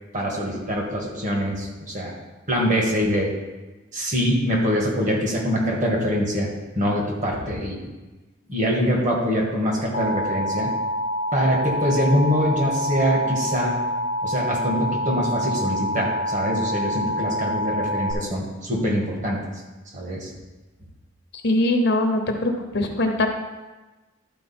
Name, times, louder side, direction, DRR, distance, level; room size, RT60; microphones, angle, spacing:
voice 1, 0.1-2.1 2.5-3.3 3.9-6.5 6.8-7.9 8.5-10.7 11.3-13.8 14.2-19.4 19.9-20.3, equal, 35° right, -1 dB, 1.7 m, -24 dB
Alarm, 9.9-18.1, equal, 75° left, 1.2 m, -26 dB
voice 2, 21.4-23.3, left 1 dB, 55° left, 3 dB, 0.9 m, -22 dB
12.0 x 4.5 x 4.4 m, 1.2 s
head